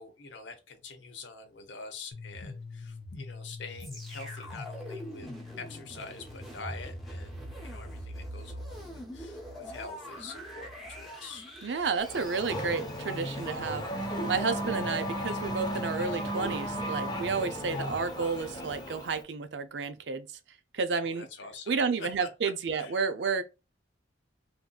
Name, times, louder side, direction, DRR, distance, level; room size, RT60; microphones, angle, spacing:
voice 1, 0.0-11.5 21.0-22.5 22.8-23.0, left 4 dB, 80° left, 0.8 m, -46 dB
sound 1, 2.1-8.1, left 3 dB, 60° left, 0.5 m, -45 dB
sound 2, 3.8-13.9 14.5-14.6, equal, ahead, 0.9 m, -43 dB
voice 2, 11.6-13.8 14.3-20.3 20.7-21.3 21.7-23.4, right 5 dB, 70° right, 0.5 m, -31 dB
Race car auto racing / Accelerating revving vroom, 12.0-19.2, equal, 25° left, 0.7 m, -35 dB
3.6 x 2.6 x 2.3 m
head